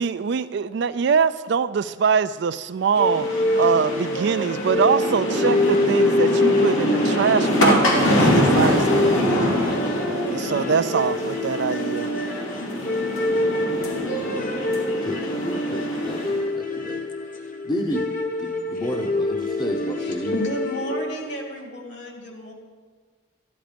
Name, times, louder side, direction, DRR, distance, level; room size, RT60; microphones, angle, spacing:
voice 1, 0.0-9.5 10.3-12.1, right 6 dB, 55° right, 14 dB, 0.3 m, -23 dB
sound 1, 2.9-16.4, equal, 85° left, 2.4 m, -24 dB
sound 2, 3.0-21.5, left 1 dB, 40° left, 1.1 m, -26 dB
voice 2, 14.8-17.0 17.6-18.1 18.4-20.4, equal, 20° left, 2 dB, 0.8 m, -31 dB
voice 3, 20.0-22.5, equal, 55° left, 1 dB, 2.4 m, -32 dB
13.0 x 10.5 x 5.1 m, 1.5 s
head